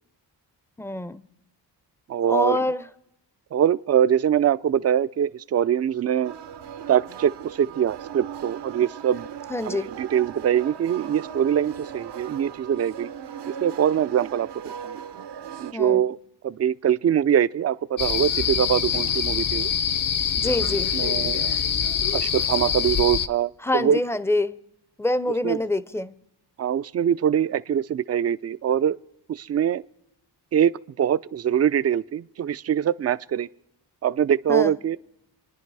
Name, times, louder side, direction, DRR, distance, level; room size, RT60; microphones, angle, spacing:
voice 1, 0.8-1.2 2.3-2.8 9.5-9.9 15.7-16.0 20.4-20.9 23.6-24.5 25.0-26.1 34.5-34.7, left 2 dB, 5° left, 0.6 m, -25 dB
voice 2, 2.1-2.6 3.5-6.3 6.9-9.3 9.6-13.1 13.5-15.0 15.6-16.2 16.4-19.7 20.6-21.6 22.1-24.0 25.4-25.6 26.6-29.0 29.3-29.8 30.5-33.5 34.0-35.0, right 9 dB, 40° right, 0.5 m, -23 dB
sound 1, 6.2-15.7, right 8 dB, 75° right, 1.0 m, -38 dB
sound 2, 18.0-23.3, left 7 dB, 50° left, 0.7 m, -24 dB
28.5 x 10.5 x 4.7 m
cardioid pair, 110°, 41 cm